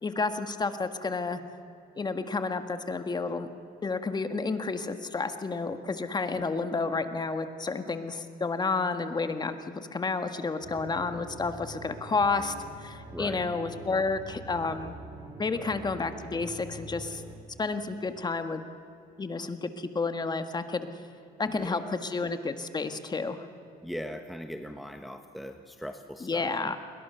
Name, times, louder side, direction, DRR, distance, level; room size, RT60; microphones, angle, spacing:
voice 1, 0.0-1.4 1.9-3.5 3.8-12.5 12.8-14.9 15.4-17.2 17.6-18.6 19.2-20.9 21.4-23.5 26.2-26.8, left 4 dB, 25° left, 8 dB, 1.7 m, -31 dB
sound 1, 10.6-17.4, right 1 dB, 20° right, 3.9 m, -45 dB
voice 2, 13.1-13.5 15.5-15.8 21.5-22.0 23.8-26.7, equal, ahead, 6 dB, 1.1 m, -40 dB
29.5 x 22.0 x 6.9 m, 2.6 s
cardioid pair, 110°, 17 cm